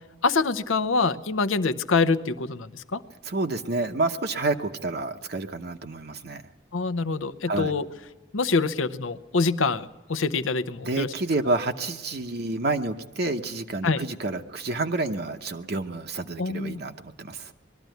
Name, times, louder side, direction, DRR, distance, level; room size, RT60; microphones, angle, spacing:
voice 1, 0.2-3.0 6.7-7.8 8.3-11.1 13.8-14.0 16.4-16.8, left 4 dB, 85° left, 14 dB, 0.8 m, -25 dB
voice 2, 3.2-6.4 7.5-7.7 10.8-17.5, right 2 dB, 50° right, 5 dB, 0.8 m, -29 dB
21.0 x 13.5 x 9.2 m, 1.3 s
head